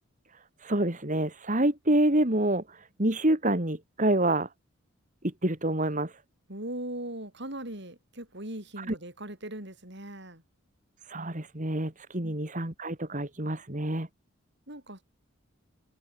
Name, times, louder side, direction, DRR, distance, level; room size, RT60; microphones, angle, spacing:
voice 1, 0.6-4.5 5.4-6.1 8.8-8.9 11.1-14.1, right 1 dB, 35° right, 2.6 m, -27 dB
voice 2, 6.5-10.4 12.2-12.4 14.7-15.0, right 1 dB, 55° right, 6.6 m, -39 dB
head